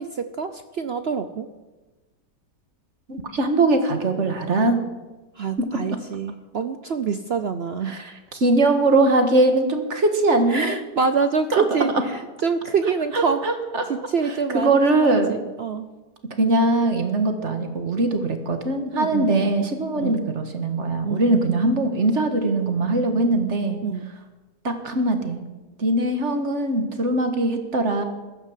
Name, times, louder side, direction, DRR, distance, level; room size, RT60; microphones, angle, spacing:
voice 1, 0.0-1.5 5.4-8.0 10.5-13.5 13.9-15.9 18.9-19.6 19.9-20.3 21.0-21.6 23.8-24.1, right 5 dB, 65° right, 10 dB, 0.6 m, -26 dB
voice 2, 3.1-4.8 5.6-5.7 7.9-10.8 11.5-11.6 13.1-13.8 14.5-15.3 16.4-23.8 24.6-25.4 25.8-28.0, right 2 dB, 40° right, 6 dB, 1.9 m, -21 dB
15.0 x 13.0 x 7.4 m, 1.2 s
omnidirectional pair, 1.9 m